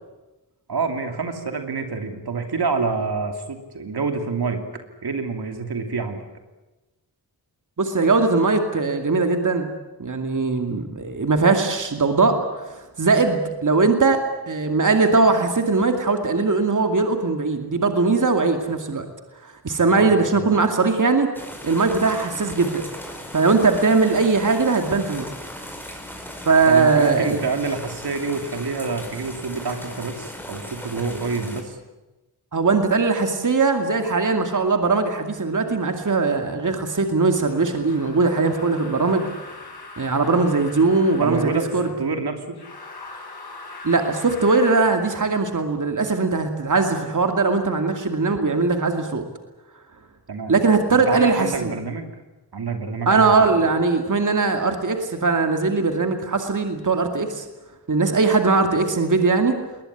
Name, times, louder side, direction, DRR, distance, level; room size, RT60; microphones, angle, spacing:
voice 1, 0.7-4.6 5.0-6.2 20.0-20.5 26.7-31.8 41.2-42.6 50.3-50.5 50.9-52.1 52.5-53.3, right 4 dB, 75° right, 5 dB, 2.9 m, -27 dB
voice 2, 7.8-9.7 10.0-12.7 13.0-19.1 19.4-21.3 21.6-22.8 23.3-25.3 26.5-27.4 32.5-39.3 40.0-41.9 43.8-49.2 50.5-51.7 53.1-57.4 57.9-59.6, right 4 dB, 50° right, 5 dB, 2.4 m, -20 dB
sound 1, 21.3-31.6, left 1 dB, 5° left, 5.1 m, -38 dB
sound 2, 37.3-42.0 42.5-45.0, left 3 dB, 70° left, 7.6 m, -41 dB
21.5 x 19.5 x 10.0 m, 1.1 s
wide cardioid pair, 80°, 39 cm